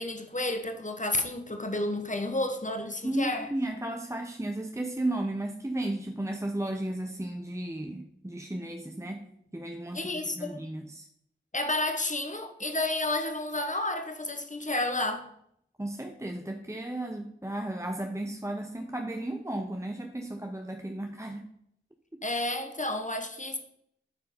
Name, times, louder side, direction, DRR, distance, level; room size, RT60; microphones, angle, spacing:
voice 1, 0.0-3.5 9.9-10.6 11.5-15.3 22.2-23.6, left 2 dB, 35° left, 1.3 m, -31 dB
voice 2, 3.0-9.3 9.5-11.1 15.8-21.5, right 1 dB, 15° right, 0.8 m, -34 dB
9.4 x 4.6 x 5.4 m
wide cardioid pair, 45°, 21 cm